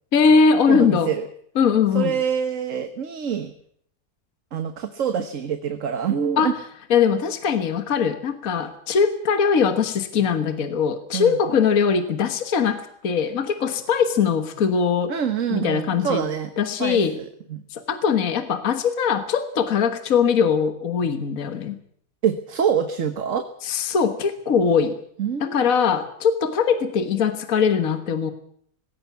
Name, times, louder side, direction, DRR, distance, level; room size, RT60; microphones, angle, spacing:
voice 1, 0.1-1.1 1.6-2.1 6.4-6.6 6.9-15.1 15.5-16.2 16.6-17.2 17.7-21.8 23.6-25.0 25.4-28.3, left 6 dB, 60° left, 8 dB, 1.7 m, -21 dB
voice 2, 0.7-1.3 1.9-3.5 4.5-6.5 11.1-11.4 15.1-16.5 16.8-17.6 22.2-23.4 25.2-25.9, right 8 dB, 55° right, 8 dB, 1.5 m, -26 dB
19.5 x 17.0 x 8.3 m, 0.65 s
omnidirectional pair, 1.6 m